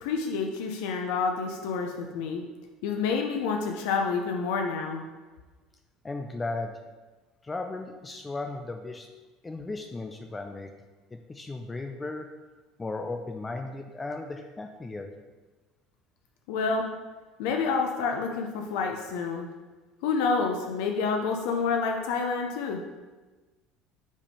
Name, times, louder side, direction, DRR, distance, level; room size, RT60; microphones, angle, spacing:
voice 1, 0.0-2.4 2.8-5.0 16.5-16.8 17.4-19.5 20.0-22.8, left 5 dB, 80° left, 2 dB, 0.6 m, -28 dB
voice 2, 6.0-6.8 7.4-9.1 9.4-10.7 11.1-12.3 12.8-15.1, left 3 dB, 15° left, 4 dB, 0.4 m, -36 dB
5.2 x 3.5 x 5.4 m, 1.3 s
cardioid pair, 130°, 0 cm